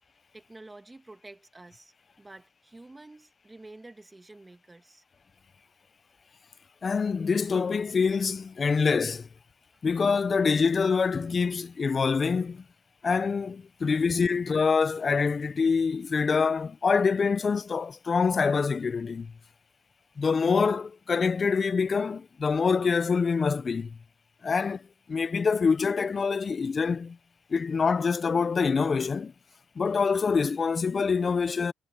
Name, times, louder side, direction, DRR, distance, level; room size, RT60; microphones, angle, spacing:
voice 1, 0.3-5.0 9.7-9.8 26.4-26.5 29.5-29.6, right 2 dB, 15° right, 2.6 m, -49 dB
voice 2, 6.8-9.3 9.8-12.6 13.0-19.3 20.2-24.0 24.4-27.2 27.5-29.3 29.8-31.7, left 5 dB, 40° left, 0.7 m, -25 dB
cardioid pair, 90°, 0 cm